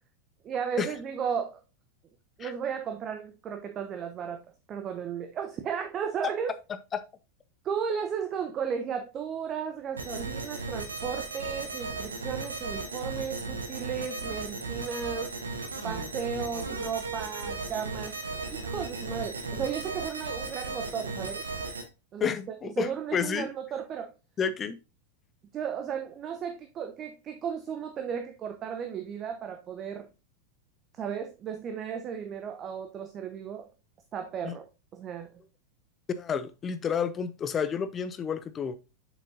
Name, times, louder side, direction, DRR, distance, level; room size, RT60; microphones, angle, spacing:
voice 1, 0.4-1.6 2.4-4.4 4.7-6.6 7.6-15.3 15.8-18.2 18.5-21.5 22.1-22.3 22.6-24.1 25.5-30.1 30.9-33.7 34.1-34.7 34.9-35.3, right 7 dB, 30° right, 0.8 m, -34 dB
sound 1, 10.0-21.8, right 3 dB, 70° right, 1.2 m, -36 dB
voice 2, 22.2-23.5 24.4-24.8 34.4-34.5 36.1-38.8, left 7 dB, 25° left, 0.6 m, -30 dB
7.4 x 6.0 x 2.7 m
figure-of-eight pair, 90°, 0 cm